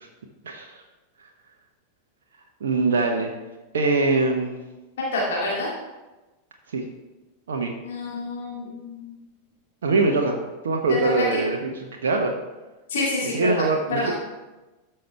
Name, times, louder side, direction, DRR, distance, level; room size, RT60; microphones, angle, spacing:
voice 1, 2.6-3.3 3.7-4.6 6.7-6.8 7.5-7.7 9.8-12.3 13.2-14.1, right 3 dB, 65° right, 2 dB, 0.9 m, -23 dB
voice 2, 5.1-5.7 7.8-9.1 11.3-11.4 12.9-13.7 13.9-14.1, left 2 dB, 60° left, -5 dB, 2.1 m, -27 dB
13.0 x 5.7 x 3.3 m, 1.1 s
figure-of-eight pair, 90°, 0 cm